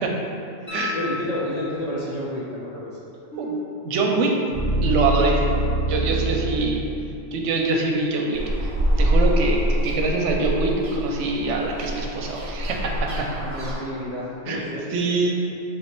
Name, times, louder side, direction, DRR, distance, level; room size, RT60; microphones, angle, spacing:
voice 1, 0.6-3.0 6.3-6.9 13.4-15.2, left 1 dB, 50° left, -7 dB, 0.5 m, -31 dB
sound 1, 0.7-2.0 4.8-4.9, left 5 dB, 85° left, 1.3 m, -34 dB
sound 2, 3.3-7.4, right 2 dB, 70° left, 1.8 m, -26 dB
voice 2, 3.8-4.3 4.8-5.5 5.9-6.8 7.3-8.7 9.0-13.3 14.5-14.7 14.9-15.3, right 3 dB, 80° right, 0 dB, 0.9 m, -24 dB
sound 3, 8.3-13.8, equal, 45° right, 0.4 m, -25 dB
3.4 x 3.1 x 4.4 m, 2.6 s
omnidirectional pair, 1.2 m